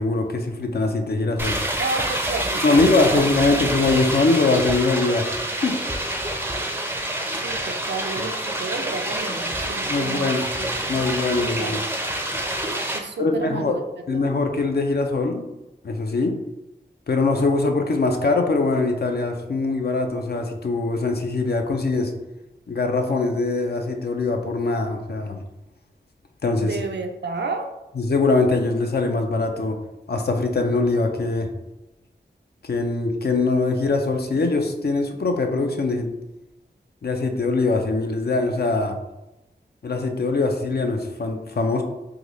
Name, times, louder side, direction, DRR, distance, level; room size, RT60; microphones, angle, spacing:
voice 1, 0.0-1.6 2.6-5.3 5.6-5.8 9.8-10.5 10.9-11.8 13.2-13.8 14.1-15.4 15.8-16.4 17.1-22.1 22.7-25.4 26.4-26.8 28.0-29.8 30.1-31.5 32.6-36.1 37.0-39.0 39.8-41.8, left 3 dB, 60° left, 4 dB, 0.5 m, -22 dB
sound 1, 1.4-13.0, right 1 dB, 10° right, 0.5 m, -27 dB
voice 2, 1.8-3.2 3.5-3.7 7.3-8.3 8.6-10.7 11.4-11.9 12.9-13.8 14.1-14.2 26.6-27.7, right 3 dB, 75° right, 5 dB, 0.4 m, -31 dB
3.8 x 2.3 x 3.1 m, 0.96 s
wide cardioid pair, 60°, 18 cm